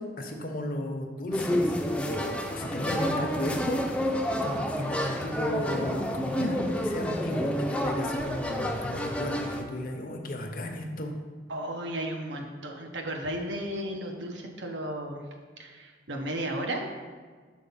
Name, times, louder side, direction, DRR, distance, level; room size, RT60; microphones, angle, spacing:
voice 1, 0.0-1.8 2.1-11.1, left 1 dB, 50° left, 3 dB, 0.8 m, -34 dB
sound 1, 1.3-9.6, equal, 5° left, 0.5 m, -29 dB
voice 2, 11.5-15.2 15.6-16.9, right 1 dB, 90° right, 2 dB, 1.0 m, -34 dB
6.3 x 4.2 x 5.6 m, 1.5 s
head